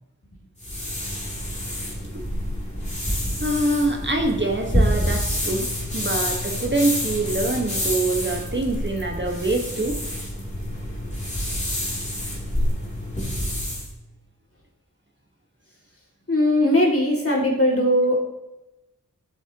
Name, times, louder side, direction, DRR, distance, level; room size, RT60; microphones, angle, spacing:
sound 1, 0.6-13.9, equal, 20° left, 3.1 m, -27 dB
voice 1, 3.4-10.0, right 2 dB, 35° right, 2 dB, 1.5 m, -25 dB
voice 2, 16.3-18.2, left 1 dB, 45° left, -2 dB, 2.6 m, -19 dB
12.0 x 7.8 x 3.0 m, 0.97 s
wide cardioid pair, 50°, 33 cm